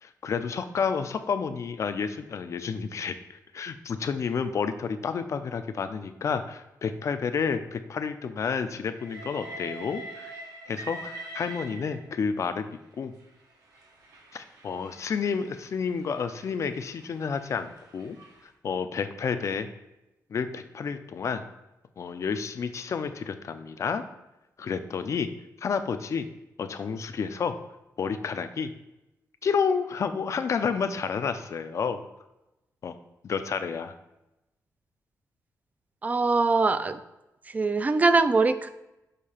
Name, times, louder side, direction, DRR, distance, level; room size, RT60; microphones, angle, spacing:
voice 1, 0.0-3.1 3.5-10.3 10.7-12.7 13.0-13.1 14.3-18.2 18.6-19.7 20.3-21.4 22.0-24.0 24.6-25.3 25.6-26.3 26.6-27.6 28.0-28.7 29.4-32.0 32.8-32.9 33.2-33.9, left 6 dB, 50° left, 10 dB, 0.5 m, -30 dB
Train, 8.9-12.3 13.2-18.4, right 1 dB, 75° right, 1.1 m, -44 dB
voice 2, 36.0-37.0 37.5-38.7, right 3 dB, 25° right, 12 dB, 0.3 m, -22 dB
6.6 x 2.8 x 5.5 m, 0.94 s
wide cardioid pair, 135°, 6 cm